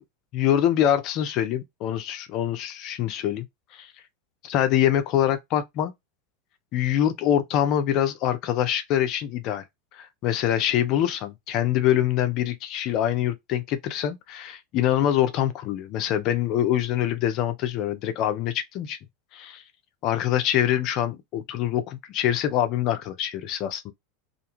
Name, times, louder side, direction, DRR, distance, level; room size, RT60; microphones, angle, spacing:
voice 1, 0.3-3.5 3.7-3.9 4.4-5.9 6.7-9.6 9.9-19.0 19.3-19.6 20.0-23.9, left 11 dB, 45° left, 0.5 m, -24 dB
2.5 x 2.3 x 2.9 m
figure-of-eight pair, 85°, 0 cm